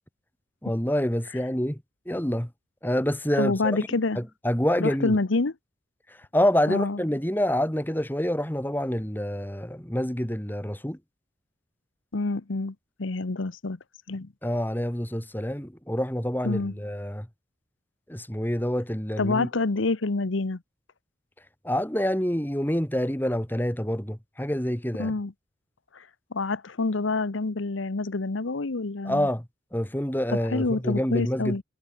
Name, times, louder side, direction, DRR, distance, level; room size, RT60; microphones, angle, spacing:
voice 1, 0.6-2.5 2.8-3.8 4.2-5.2 6.1-11.0 14.4-17.3 18.1-19.5 21.6-25.1 29.0-29.5 29.7-31.6, equal, 10° left, 2.2 m, -27 dB
voice 2, 3.4-4.2 4.8-5.5 6.7-7.0 12.1-13.8 14.1-14.3 16.4-16.7 19.2-20.6 25.0-25.3 25.9-29.3 30.3-31.6, left 3 dB, 85° left, 1.0 m, -27 dB
head